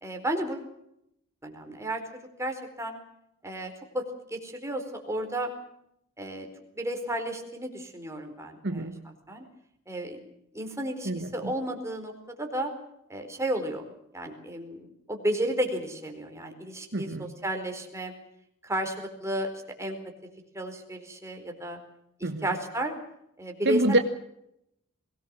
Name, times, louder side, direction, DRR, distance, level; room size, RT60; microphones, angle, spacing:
voice 1, 0.0-0.7 1.4-2.0 2.4-3.0 3.4-4.0 4.3-5.5 6.2-6.5 6.7-8.9 9.3-9.4 9.9-10.2 10.5-12.1 12.4-12.7 13.1-13.8 14.1-18.1 18.6-19.5 19.8-20.0 20.5-21.8 22.2-22.9 23.4-24.0, right 1 dB, 15° right, 3 dB, 4.3 m, -32 dB
voice 2, 8.6-9.0 11.0-11.5 16.9-17.3 22.2-22.5 23.6-24.0, right 1 dB, 55° right, 7 dB, 1.4 m, -27 dB
22.5 x 19.0 x 7.6 m, 0.77 s
head